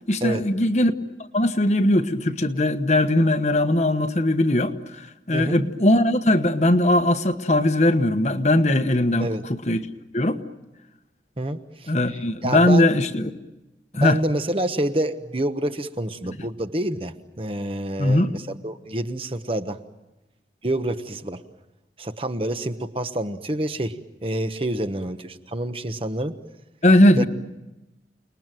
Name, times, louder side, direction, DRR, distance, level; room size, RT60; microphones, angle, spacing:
voice 1, 0.1-0.9 1.3-9.8 10.1-10.4 11.9-13.3 13.9-14.2 18.0-18.3 26.8-27.2, left 1 dB, 40° left, 9 dB, 1.1 m, -20 dB
voice 2, 11.4-11.9 12.4-12.9 13.9-19.8 20.6-21.4 22.0-24.0 24.2-26.4 27.2-27.3, right 1 dB, 30° right, 9 dB, 1.1 m, -27 dB
29.5 x 20.5 x 9.1 m, 1.0 s
head